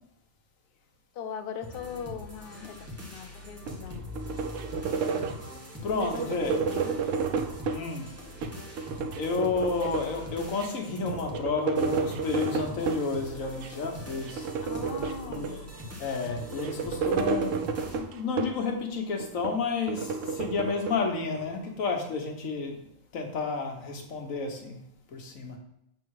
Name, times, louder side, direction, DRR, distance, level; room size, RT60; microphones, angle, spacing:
voice 1, 1.1-4.1 5.5-5.7 6.0-7.2 14.6-15.6, left 6 dB, 55° left, 7 dB, 0.7 m, -40 dB
sound 1, 1.6-18.0, left 1 dB, 10° right, 1.1 m, -43 dB
sound 2, 3.7-5.5 6.0-7.9 8.3-10.2 10.6-10.7 10.9-13.1 13.6-13.9 14.2-15.8 16.3-18.7 19.2-21.5, right 5 dB, 75° right, 1.0 m, -31 dB
voice 2, 5.8-6.5 7.7-8.1 9.1-14.5 15.3-15.7 16.0-17.6 17.9-22.8 23.1-24.8 25.1-25.6, left 4 dB, 80° left, 3 dB, 1.5 m, -31 dB
7.6 x 3.6 x 4.7 m, 0.80 s
omnidirectional pair, 1.4 m